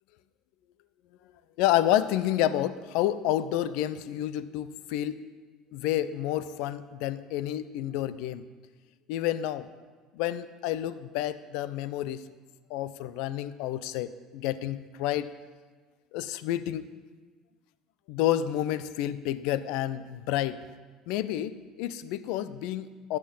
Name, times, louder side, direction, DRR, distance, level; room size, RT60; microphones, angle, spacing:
voice 1, 1.6-5.2 5.7-8.4 9.1-9.7 10.2-12.2 12.7-15.3 16.1-16.8 18.1-20.6 21.1-23.2, left 12 dB, 65° left, 15 dB, 0.7 m, -29 dB
16.0 x 12.0 x 5.5 m, 1.4 s
figure-of-eight pair, 60°, 0 cm